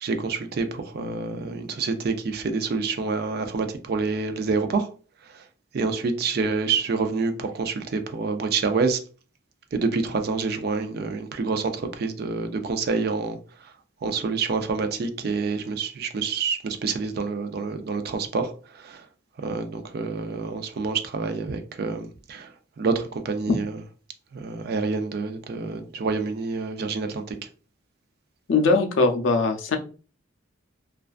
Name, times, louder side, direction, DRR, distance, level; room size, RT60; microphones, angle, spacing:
voice 1, 0.0-4.9 5.7-9.0 9.7-13.4 14.0-18.5 18.8-19.0 19.4-22.5 22.8-23.8 24.3-27.2, right 4 dB, 50° right, 0.4 m, -27 dB
voice 2, 28.5-29.8, left 3 dB, 75° left, 0.5 m, -20 dB
2.3 x 2.3 x 2.4 m
head